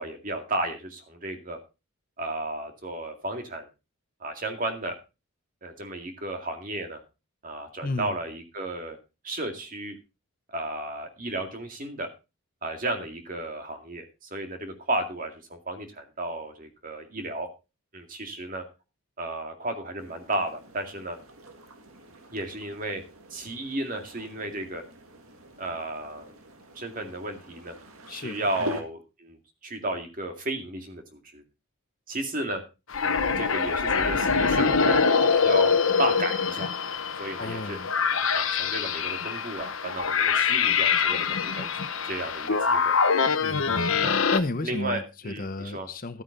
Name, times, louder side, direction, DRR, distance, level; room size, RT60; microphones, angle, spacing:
voice 1, 0.0-1.6 2.2-3.7 4.2-5.0 5.6-7.0 7.4-9.0 9.2-9.9 10.5-12.1 12.6-17.5 17.9-18.6 19.2-21.2 22.3-23.0 23.3-24.8 25.6-26.3 26.7-27.8 28.1-31.4 32.1-32.6 33.0-36.7 37.1-37.8 38.3-41.7 42.1-43.0 44.0-44.2 44.6-45.9, right 1 dB, 40° right, 2.2 m, -33 dB
voice 2, 7.8-8.1 28.1-28.7 37.4-37.9 43.4-46.2, left 2 dB, 40° left, 0.8 m, -34 dB
sound 1, 20.0-28.8, right 1 dB, 80° right, 2.0 m, -45 dB
sound 2, 32.9-44.4, left 5 dB, 70° left, 1.0 m, -24 dB
12.5 x 9.2 x 3.9 m
head